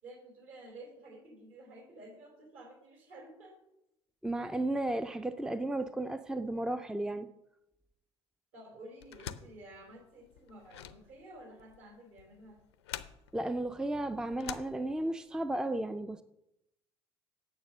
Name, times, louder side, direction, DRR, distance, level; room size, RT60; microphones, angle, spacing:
voice 1, 0.0-3.6 8.5-12.6, right 1 dB, 60° right, 0 dB, 4.5 m, -52 dB
voice 2, 4.2-7.3 13.3-16.2, right 1 dB, 5° right, 11 dB, 0.5 m, -34 dB
sound 1, 9.0-15.3, left 10 dB, 75° left, 0.6 m, -47 dB
8.8 x 7.3 x 6.3 m, 0.86 s
figure-of-eight pair, 60°, 14 cm